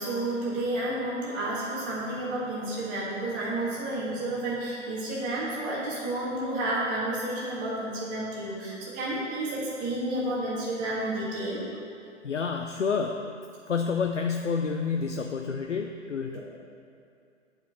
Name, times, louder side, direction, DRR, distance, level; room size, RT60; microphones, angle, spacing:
voice 1, 0.0-11.6 16.3-16.4, right 1 dB, 20° right, -6 dB, 1.5 m, -31 dB
voice 2, 12.2-13.3 13.7-16.4, left 5 dB, 75° left, 3 dB, 0.6 m, -29 dB
9.3 x 4.8 x 6.0 m, 2.5 s
figure-of-eight pair, 120°, 37 cm